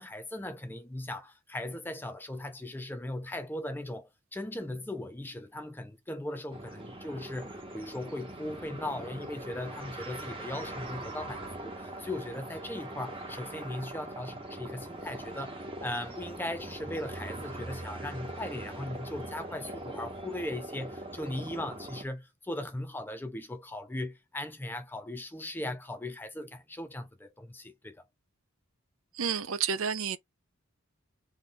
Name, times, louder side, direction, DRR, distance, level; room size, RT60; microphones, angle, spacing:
voice 1, 0.0-28.0, left 1 dB, 10° left, 0.5 m, -38 dB
sound 1, 6.5-22.0, right 1 dB, 25° right, 1.0 m, -42 dB
voice 2, 29.2-30.2, right 7 dB, 70° right, 0.6 m, -30 dB
4.2 x 2.7 x 3.5 m
head